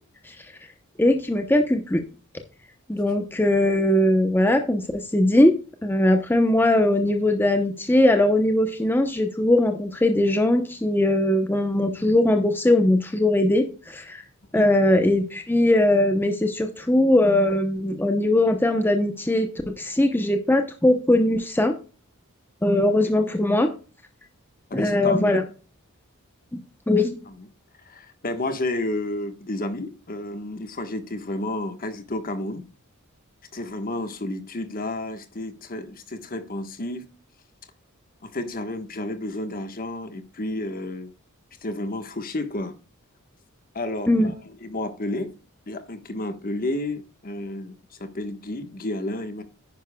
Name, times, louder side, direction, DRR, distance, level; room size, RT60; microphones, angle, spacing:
voice 1, 1.0-2.0 2.9-5.5 5.8-14.2 14.5-21.7 22.6-23.7 24.7-25.4 26.9-27.2 44.1-44.3, left 1 dB, 10° left, 0.8 m, -20 dB
voice 2, 24.7-25.5 27.3-27.4 27.8-32.6 33.5-37.1 38.2-41.1 41.6-42.7 43.7-45.3 45.7-47.7 48.0-49.4, left 1 dB, 40° left, 1.3 m, -31 dB
10.0 x 10.0 x 2.3 m
head